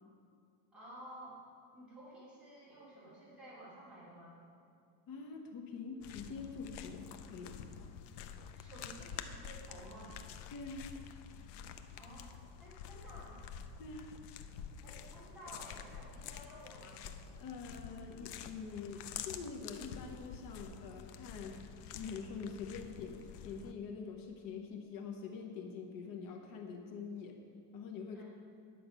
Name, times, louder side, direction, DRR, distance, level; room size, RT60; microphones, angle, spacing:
voice 1, 0.7-1.4 1.7-4.4 8.5-10.2 11.9-13.4 14.8-17.0 28.1-28.2, right 1 dB, ahead, -10 dB, 2.8 m, -53 dB
voice 2, 5.1-7.7 10.5-10.9 13.8-14.1 17.4-21.6 21.9-27.4 27.7-28.2, left 5 dB, 50° left, 2 dB, 1.0 m, -45 dB
sound 1, 6.0-23.7, left 7 dB, 65° left, 0.7 m, -48 dB
10.5 x 7.5 x 5.3 m, 2.5 s
cardioid pair, 180°, 44 cm